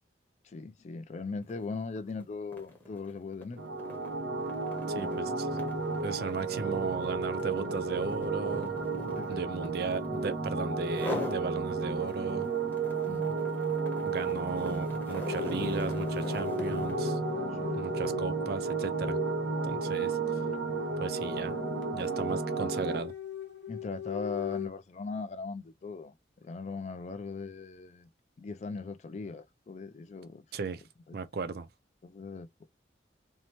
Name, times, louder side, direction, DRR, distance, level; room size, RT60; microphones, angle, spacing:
voice 1, 0.4-3.6 5.0-5.4 9.2-9.5 13.1-13.4 17.5-17.9 19.9-20.1 23.7-26.1 26.4-28.1 28.4-30.4 31.1-31.2 32.0-32.7, left 4 dB, 40° left, 0.3 m, -39 dB
sound 1, 1.4-1.6 2.0-10.4 10.9-11.4 11.9-17.0, left 2 dB, 10° left, 0.8 m, -42 dB
sound 2, 3.6-23.0, right 4 dB, 85° right, 1.0 m, -33 dB
voice 2, 4.9-5.5 6.0-8.8 9.3-12.5 14.1-17.2 17.7-19.2 19.6-20.2 21.0-21.6 21.9-23.1 30.5-30.8 31.1-31.7, right 4 dB, 55° right, 0.4 m, -36 dB
sound 3, 11.7-14.0 15.2-24.7, left 8 dB, 75° left, 0.9 m, -41 dB
2.7 x 2.1 x 2.9 m
head